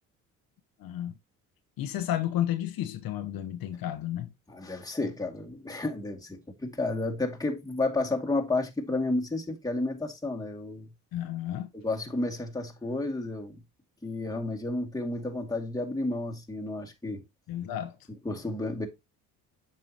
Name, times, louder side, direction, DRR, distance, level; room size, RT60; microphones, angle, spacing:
voice 1, 0.8-1.2 1.8-4.3 11.1-11.7 17.5-18.0, left 12 dB, 70° left, 1.1 m, -32 dB
voice 2, 4.5-10.9 11.8-13.6 14.0-17.2 18.2-18.9, left 2 dB, 10° left, 2.2 m, -31 dB
7.6 x 5.8 x 2.9 m
supercardioid pair, 75°, 36 cm